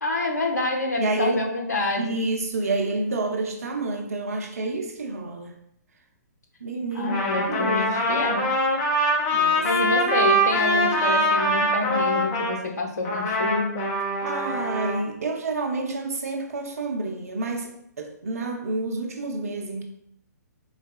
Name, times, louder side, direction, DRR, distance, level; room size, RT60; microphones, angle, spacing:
voice 1, 0.0-2.2 6.9-8.5 9.6-14.0, left 2 dB, 65° left, 1 dB, 0.8 m, -27 dB
voice 2, 1.0-1.5 2.0-5.5 6.6-8.3 9.3-9.7 14.2-17.7 18.0-19.8, right 3 dB, 55° right, 3 dB, 0.7 m, -29 dB
Trumpet, 7.0-12.5 13.0-15.0, equal, 30° left, 0.9 m, -23 dB
4.1 x 3.5 x 2.3 m, 0.72 s
figure-of-eight pair, 125°, 10 cm